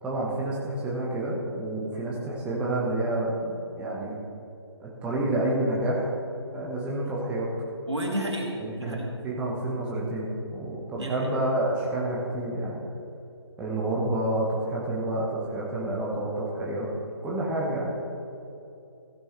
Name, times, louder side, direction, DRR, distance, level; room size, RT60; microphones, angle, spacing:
voice 1, 0.0-4.2 4.8-6.1 6.5-7.5 8.6-9.0 9.2-12.8 13.6-16.9 17.2-18.0, right 1 dB, 10° right, -5 dB, 1.2 m, -29 dB
voice 2, 7.9-9.2 11.0-11.3, right 1 dB, 80° right, -1 dB, 2.6 m, -31 dB
15.0 x 10.0 x 3.3 m, 2.8 s
figure-of-eight pair, 145°, 14 cm